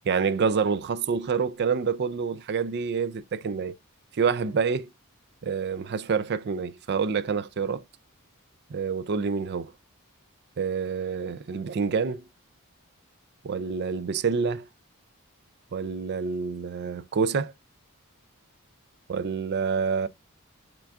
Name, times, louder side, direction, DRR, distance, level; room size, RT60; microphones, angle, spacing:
voice 1, 0.0-3.7 4.1-4.9 5.4-7.8 8.7-9.7 10.6-12.2 13.4-14.7 15.7-17.5 19.1-20.1, right 5 dB, 50° right, 0.4 m, -27 dB
5.8 x 3.8 x 2.4 m
head